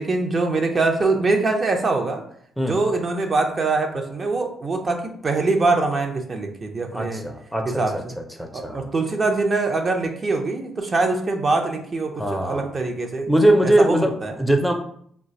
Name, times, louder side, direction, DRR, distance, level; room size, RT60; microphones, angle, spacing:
voice 1, 0.0-2.2 2.6-7.2 7.6-8.1 8.5-13.3 13.6-14.4, right 3 dB, 40° right, 3 dB, 0.6 m, -23 dB
voice 2, 6.9-7.8 8.4-8.9 12.2-12.7 13.3-14.1 14.4-14.7, right 1 dB, ahead, 3 dB, 0.5 m, -20 dB
2.4 x 2.2 x 4.0 m, 0.64 s
supercardioid pair, 55°, 0 cm